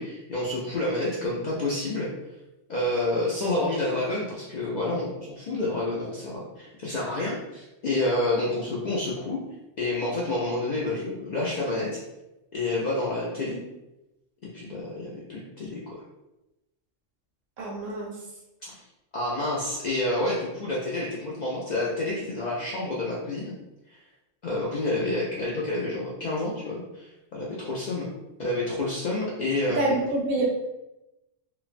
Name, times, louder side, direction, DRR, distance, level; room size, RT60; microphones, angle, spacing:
voice 1, 0.0-2.1 2.7-9.4 9.8-12.0 12.5-13.6 14.4-16.0 18.6-18.7 19.1-23.5 23.9-24.0 24.4-28.1 28.4-30.0, left 2 dB, 80° left, -5 dB, 0.4 m, -29 dB
voice 2, 17.6-18.1 29.7-30.5, right 2 dB, 60° right, -2 dB, 0.7 m, -26 dB
3.0 x 2.0 x 2.5 m, 0.95 s
omnidirectional pair, 1.3 m